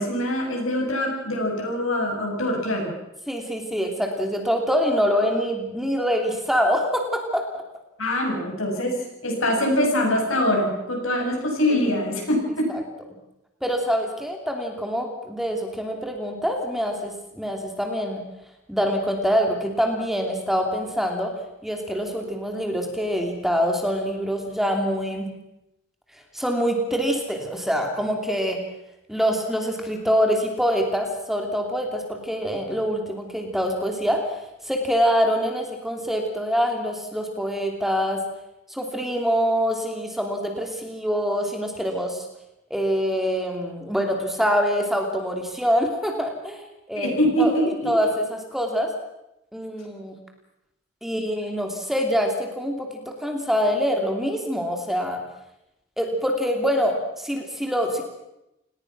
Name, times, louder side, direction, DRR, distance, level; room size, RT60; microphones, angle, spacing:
voice 1, 0.0-2.9 8.0-12.7 47.0-47.9, equal, 85° left, 1 dB, 7.8 m, -24 dB
voice 2, 3.3-7.6 11.7-11.9 12.7-12.8 13.6-18.2 18.7-21.3 21.6-25.3 26.1-28.6 29.1-38.2 38.7-42.3 42.7-47.1 47.4-47.6 47.8-48.9 49.5-50.1 51.0-52.9 53.2-55.2 56.0-58.0, equal, ahead, 3 dB, 2.9 m, -25 dB
29.0 x 19.0 x 6.2 m, 0.88 s
head